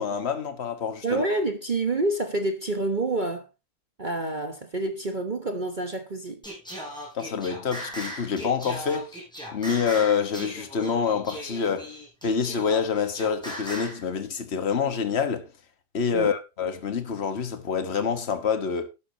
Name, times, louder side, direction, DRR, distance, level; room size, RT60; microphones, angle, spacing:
voice 1, 0.0-1.2 7.1-9.2 9.5-11.9 12.2-15.5 15.9-18.9, left 6 dB, 40° left, 1.6 m, -27 dB
voice 2, 1.0-3.5 4.0-6.4 16.1-16.3, right 2 dB, 30° right, 1.1 m, -28 dB
Singing, 6.4-14.0, equal, ahead, 6.1 m, -38 dB
12.0 x 12.0 x 2.9 m
omnidirectional pair, 1.8 m